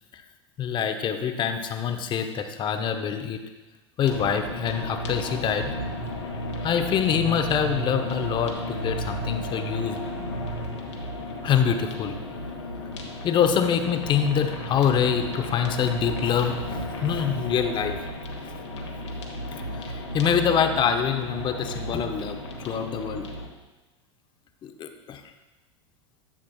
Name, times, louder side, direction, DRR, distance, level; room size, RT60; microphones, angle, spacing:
voice 1, 0.6-3.4 4.0-5.7 6.6-10.0 11.4-12.2 13.2-18.0 19.7-23.2 24.6-25.2, left 7 dB, 30° left, 7 dB, 0.8 m, -25 dB
sound 1, 4.0-23.5, left 1 dB, 75° left, 1.4 m, -33 dB
11.0 x 7.4 x 2.3 m, 1.1 s
figure-of-eight pair, 85°, 15 cm